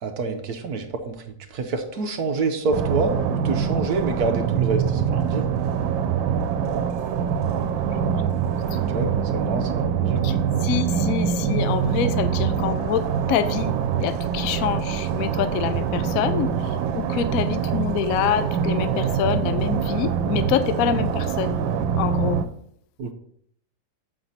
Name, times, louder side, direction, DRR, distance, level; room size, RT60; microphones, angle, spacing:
voice 1, 0.0-1.1 1.5-5.4 8.9-10.2 23.0-23.1, right 3 dB, 60° right, 6 dB, 1.2 m, -27 dB
sound 1, 2.7-22.4, right 7 dB, 85° right, 1.4 m, -24 dB
voice 2, 10.6-13.7 14.0-21.6 22.0-22.4, left 9 dB, 65° left, 11 dB, 0.9 m, -26 dB
7.6 x 5.8 x 4.0 m, 0.66 s
omnidirectional pair, 2.0 m